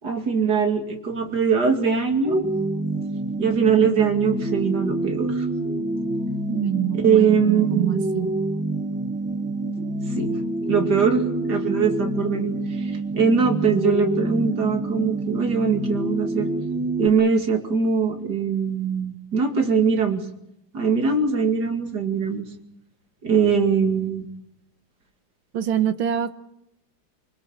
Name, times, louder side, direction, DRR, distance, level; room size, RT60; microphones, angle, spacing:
voice 1, 0.0-2.5 3.4-5.5 6.9-7.9 10.1-10.4 10.7-16.5 17.0-20.2 20.7-22.4 23.2-24.3, right 6 dB, 50° right, 5 dB, 2.9 m, -22 dB
sound 1, 2.2-17.1, right 1 dB, 5° right, 1.3 m, -27 dB
voice 2, 6.5-8.3 25.5-26.3, right 10 dB, 70° right, 11 dB, 1.9 m, -25 dB
25.0 x 22.0 x 7.3 m, 0.81 s
omnidirectional pair, 2.3 m